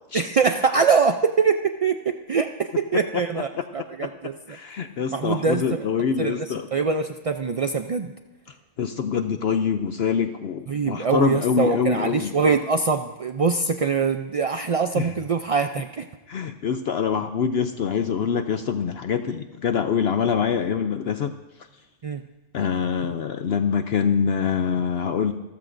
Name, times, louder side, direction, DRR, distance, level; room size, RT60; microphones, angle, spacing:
voice 1, 0.1-4.3 5.1-5.8 6.2-6.5 6.7-8.1 10.7-16.1 22.0-22.2, right 5 dB, 55° right, 6 dB, 0.3 m, -23 dB
voice 2, 4.5-6.7 8.8-12.3 15.0-15.1 16.3-21.3 22.5-25.3, left 7 dB, 60° left, 8 dB, 0.8 m, -25 dB
29.0 x 14.0 x 2.6 m, 1.1 s
omnidirectional pair, 1.3 m